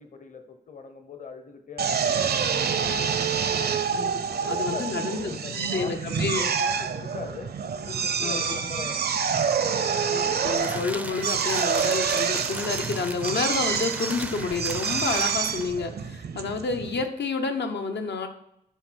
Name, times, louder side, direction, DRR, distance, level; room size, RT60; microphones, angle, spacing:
voice 1, 0.0-3.0 4.4-9.8, left 5 dB, 45° left, 6 dB, 0.8 m, -42 dB
Drill, 1.8-17.1, right 6 dB, 65° right, 0.6 m, -27 dB
voice 2, 3.9-4.2 4.5-6.5 8.2-8.7 10.1-18.3, left 4 dB, 80° left, 5 dB, 0.9 m, -30 dB
sound 1, 10.1-15.8, right 1 dB, 10° right, 0.4 m, -37 dB
10.0 x 4.1 x 6.3 m, 0.78 s
wide cardioid pair, 175°, 17 cm